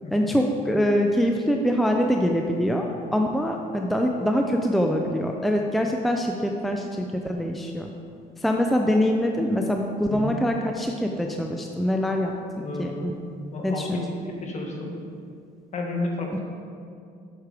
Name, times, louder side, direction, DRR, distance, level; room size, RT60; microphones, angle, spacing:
voice 1, 0.1-7.9 8.4-12.3 12.8-13.1 13.6-14.0, equal, ahead, 2 dB, 0.5 m, -24 dB
voice 2, 12.6-13.0 13.5-15.0 15.7-16.4, left 2 dB, 45° left, 0 dB, 1.6 m, -32 dB
8.2 x 6.4 x 4.9 m, 2.4 s
cardioid pair, 110°, 17 cm